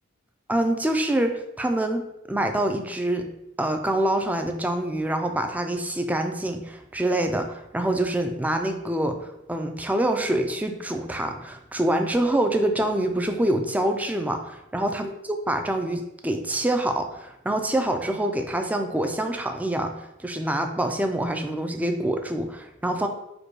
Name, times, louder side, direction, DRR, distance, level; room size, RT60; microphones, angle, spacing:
voice 1, 0.5-3.3 3.6-15.1 15.5-23.1, right 1 dB, 10° right, 5 dB, 0.4 m, -26 dB
5.1 x 2.3 x 4.5 m, 0.86 s
head